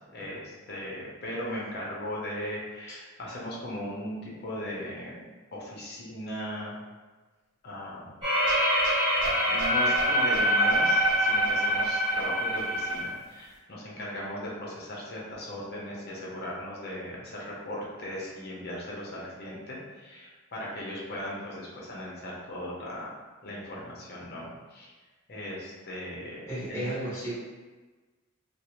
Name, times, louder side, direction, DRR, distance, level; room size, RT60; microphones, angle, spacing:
voice 1, 0.1-5.2 5.5-6.8 7.6-8.2 9.4-23.1 23.4-24.9 25.3-26.8, left 1 dB, 50° left, -4 dB, 0.7 m, -38 dB
sound 1, 8.2-13.0, equal, 25° right, 1.2 m, -24 dB
voice 2, 26.5-27.4, right 1 dB, 15° left, -11 dB, 0.9 m, -34 dB
2.6 x 2.1 x 2.9 m, 1.3 s
head